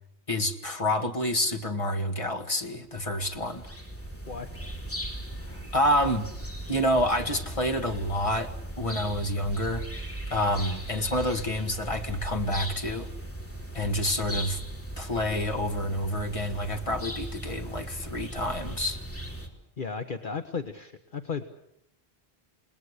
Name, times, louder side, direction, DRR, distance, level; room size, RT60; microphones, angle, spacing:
voice 1, 0.3-3.7 5.5-6.3 6.7-9.9 10.3-13.1 13.7-14.6 15.0-19.0, left 1 dB, 30° left, 5 dB, 1.9 m, -28 dB
sound 1, 2.9-19.5, right 1 dB, 10° left, 3.4 m, -38 dB
voice 2, 19.8-21.5, left 5 dB, 50° left, 7 dB, 1.3 m, -34 dB
29.0 x 19.5 x 8.3 m, 0.76 s
omnidirectional pair, 1.1 m